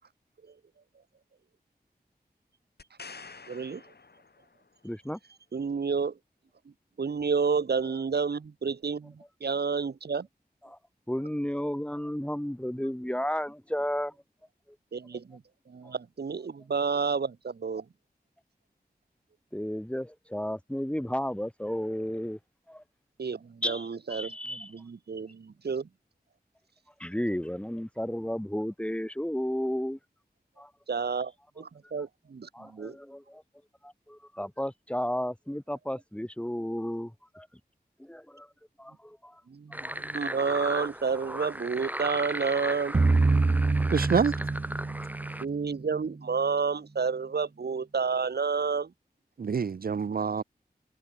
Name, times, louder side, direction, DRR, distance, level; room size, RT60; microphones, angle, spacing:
sound 1, 2.8-4.8 8.4-8.5, left 4 dB, 85° left, 6.9 m, -48 dB
voice 1, 3.5-3.8 5.5-6.2 7.0-10.3 14.9-15.4 15.7-17.8 23.2-25.9 30.9-33.0 39.5-42.9 45.4-48.9, right 5 dB, 90° right, 1.3 m, -30 dB
voice 2, 4.8-5.2 9.6-9.7 10.6-10.8 11.1-14.1 19.5-22.4 22.7-22.8 23.6-24.7 27.0-30.0 30.6-30.7 32.5-33.4 33.8-37.5 38.0-38.5 38.8-39.4 39.8-39.9, equal, 5° left, 3.5 m, -33 dB
sound 2, 39.7-45.4, right 1 dB, 10° right, 3.9 m, -36 dB
sound 3, 42.9-46.1, right 3 dB, 45° right, 1.4 m, -26 dB
voice 3, 43.9-44.3 49.4-50.4, right 6 dB, 65° right, 0.5 m, -26 dB
wide cardioid pair, 60°, 16 cm